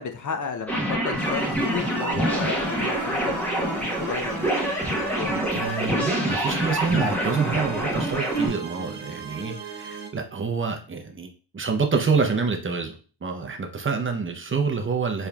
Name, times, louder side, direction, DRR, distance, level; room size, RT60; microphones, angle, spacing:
voice 1, 0.0-5.4 13.8-14.0, left 6 dB, 45° left, 7 dB, 0.6 m, -34 dB
sound 1, 0.7-8.5, right 1 dB, 5° left, 1.0 m, -26 dB
sound 2, 1.2-10.1, right 4 dB, 65° right, 1.0 m, -39 dB
voice 2, 5.5-12.9 13.2-15.3, right 5 dB, 30° right, 3 dB, 0.6 m, -27 dB
4.2 x 3.4 x 2.3 m, 0.38 s
wide cardioid pair, 120°, 44 cm